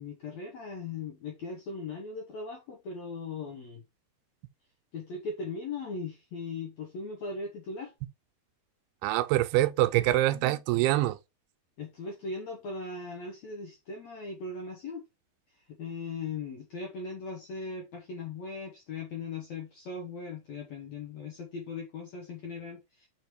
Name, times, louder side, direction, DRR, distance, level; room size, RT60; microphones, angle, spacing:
voice 1, 0.0-3.8 4.9-7.9 11.8-15.0 15.5-23.1, left 4 dB, 75° left, 1.6 m, -39 dB
voice 2, 9.0-11.2, right 15 dB, 85° right, 2.5 m, -25 dB
5.3 x 5.0 x 4.6 m
omnidirectional pair, 4.6 m